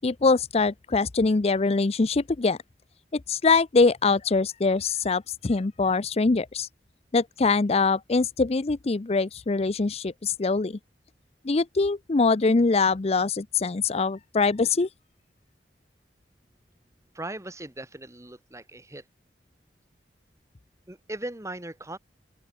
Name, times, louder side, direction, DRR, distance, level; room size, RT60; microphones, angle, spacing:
voice 1, 0.0-2.6 3.1-6.7 7.1-10.8 11.4-14.9, left 4 dB, 35° left, 0.5 m, -23 dB
voice 2, 17.1-19.0 20.9-22.0, right 1 dB, 15° right, 2.2 m, -38 dB
open air
head